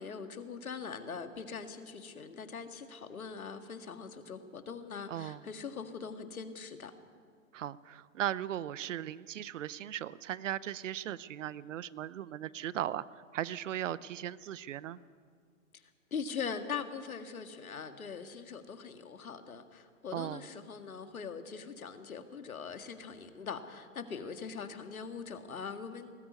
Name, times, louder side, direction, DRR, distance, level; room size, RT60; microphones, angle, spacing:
voice 1, 0.0-6.9 15.7-15.8 16.1-26.1, left 6 dB, 85° left, 8 dB, 2.0 m, -42 dB
voice 2, 5.1-5.4 7.5-15.0 20.1-20.4, right 11 dB, 60° right, 19 dB, 0.8 m, -37 dB
19.5 x 14.0 x 9.6 m, 2.1 s
hypercardioid pair, 125°, 42 cm